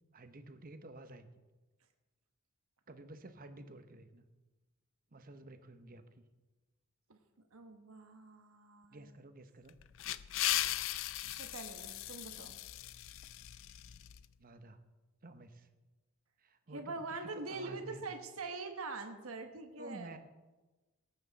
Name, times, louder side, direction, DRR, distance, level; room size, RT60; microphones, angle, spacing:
voice 1, 0.1-1.3 2.9-4.3 5.1-6.2 8.9-9.8 14.4-14.8 15.2-15.7 16.4-18.0 19.8-20.2, right 2 dB, 40° right, 9 dB, 0.9 m, -51 dB
voice 2, 7.5-9.1 11.4-12.6 16.7-20.2, right 3 dB, 70° right, 6 dB, 1.2 m, -44 dB
sound 1, 9.7-14.2, left 14 dB, 60° left, 0.4 m, -38 dB
18.5 x 8.9 x 4.1 m, 1.2 s
head